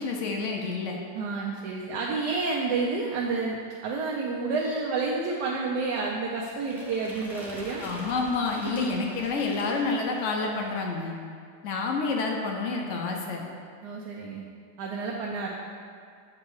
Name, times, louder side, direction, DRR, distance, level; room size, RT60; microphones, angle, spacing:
voice 1, 0.0-1.0 7.8-11.2 11.6-13.4, left 4 dB, 65° left, 1 dB, 0.8 m, -29 dB
voice 2, 1.1-7.9 8.7-8.9 13.8-14.4 14.8-15.5, right 4 dB, 75° right, -2 dB, 1.1 m, -30 dB
sound 1, 6.6-10.6, equal, 5° right, 0.4 m, -44 dB
7.4 x 3.1 x 4.6 m, 2.2 s
omnidirectional pair, 1.9 m